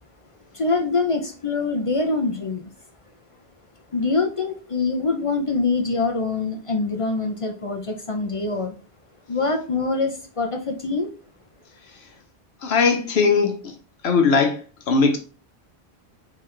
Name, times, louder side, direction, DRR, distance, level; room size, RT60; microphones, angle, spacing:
voice 1, 0.5-2.7 3.9-8.8 9.3-11.1, left 3 dB, 40° left, 0.5 m, -24 dB
voice 2, 12.6-13.7 14.0-14.6 14.9-15.2, left 4 dB, 85° left, 1.2 m, -19 dB
4.2 x 3.9 x 3.2 m
omnidirectional pair, 1.1 m